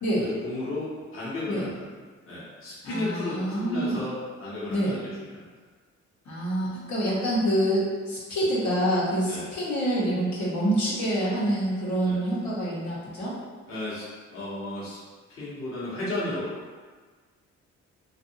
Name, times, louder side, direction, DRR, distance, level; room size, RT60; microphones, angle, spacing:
voice 1, 0.1-1.9 2.3-5.4 9.2-9.5 12.0-12.2 13.7-14.1 14.3-15.0 15.3-16.8, left 1 dB, 45° left, -9 dB, 1.0 m, -34 dB
voice 2, 2.8-4.0 4.7-5.0 6.2-13.4, right 1 dB, 70° left, -8 dB, 1.1 m, -26 dB
2.6 x 2.5 x 2.8 m, 1.4 s
cardioid pair, 90°, 30 cm